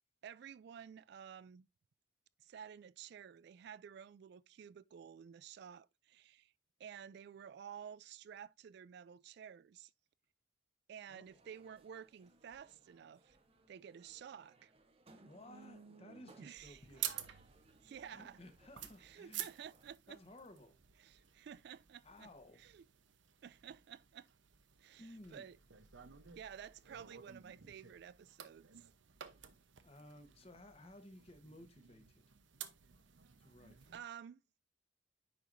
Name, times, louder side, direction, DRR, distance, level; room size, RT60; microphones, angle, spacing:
voice 1, 0.2-1.7 2.4-6.5 6.8-9.9 10.9-13.4 13.7-14.7 16.4-17.0 17.8-18.4 19.0-20.2 21.0-22.3 22.6-22.8 23.4-24.3 24.8-25.6 26.4-28.9 33.9-34.4, right 8 dB, 60° right, 0.3 m, -52 dB
sound 1, 11.2-19.9, right 3 dB, 30° right, 0.8 m, -64 dB
voice 2, 15.2-17.2 18.1-19.5 20.1-20.7 21.2-21.4 22.0-22.7 25.0-25.5 29.8-32.2 33.4-33.9, left 1 dB, 30° left, 1.2 m, -57 dB
sound 2, 16.6-34.0, right 11 dB, 80° right, 0.8 m, -51 dB
9.6 x 4.6 x 2.6 m
head